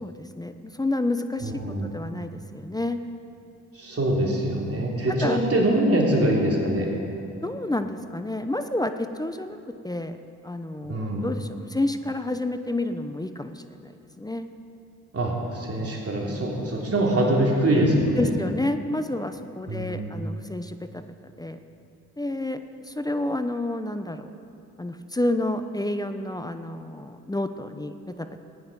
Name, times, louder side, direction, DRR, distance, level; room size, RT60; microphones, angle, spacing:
voice 1, 0.0-3.0 4.3-4.4 5.2-5.9 7.4-9.6 9.8-10.2 10.4-13.9 14.2-14.5 16.3-16.5 18.2-21.0 21.4-21.6 22.2-22.6 22.9-24.3 24.8-28.4, left 1 dB, 10° left, 8 dB, 0.7 m, -29 dB
voice 2, 1.4-2.0 3.7-6.9 10.9-11.3 15.1-18.3 19.7-20.2, right 1 dB, 40° right, -2 dB, 3.3 m, -24 dB
16.0 x 9.4 x 5.4 m, 2.7 s
hypercardioid pair, 45°, 36 cm